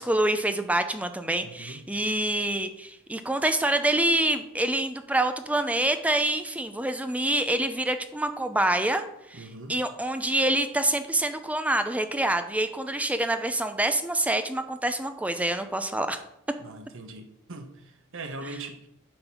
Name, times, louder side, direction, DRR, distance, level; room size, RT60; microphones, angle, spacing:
voice 1, 0.0-16.2 18.4-18.6, right 1 dB, 5° right, 0.6 m, -26 dB
voice 2, 1.4-1.8 9.3-9.8 16.6-18.9, right 2 dB, 65° right, 1.2 m, -41 dB
9.1 x 5.3 x 6.0 m
head